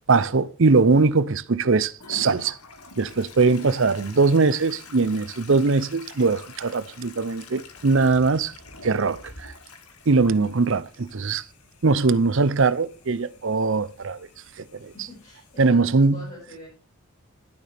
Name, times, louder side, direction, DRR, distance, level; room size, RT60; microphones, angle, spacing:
voice 1, 0.1-2.6 3.0-8.5 8.8-9.5 10.1-11.4 11.8-14.3 14.6-14.9 15.6-16.2, right 4 dB, 60° right, 0.6 m, -21 dB
Toilet flush, 2.0-15.6, left 3 dB, 90° left, 2.1 m, -46 dB
voice 2, 14.9-16.7, left 1 dB, 30° left, 5.9 m, -43 dB
12.0 x 10.5 x 3.5 m
head